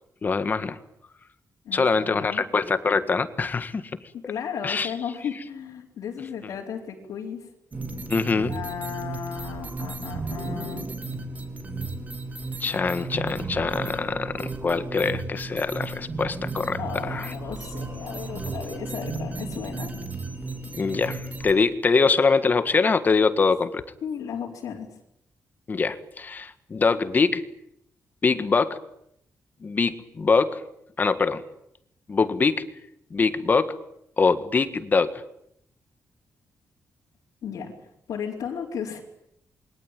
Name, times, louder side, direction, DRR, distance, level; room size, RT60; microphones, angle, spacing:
voice 1, 0.2-0.8 1.7-3.8 4.6-4.9 8.1-8.5 12.6-16.8 17.1-17.3 20.7-23.8 25.7-27.4 28.2-28.8 29.6-30.6 31.0-31.4 32.1-32.6 33.1-33.7 34.2-35.2, left 4 dB, 30° left, 11 dB, 1.7 m, -23 dB
voice 2, 1.6-2.4 4.1-7.5 8.4-10.9 16.8-19.9 24.0-24.9 37.4-37.8 38.1-39.0, left 7 dB, 85° left, -3 dB, 4.2 m, -34 dB
sound 1, 7.7-21.5, right 3 dB, 30° right, 3.5 m, -34 dB
28.0 x 23.0 x 9.1 m, 0.78 s
wide cardioid pair, 155°, 6 cm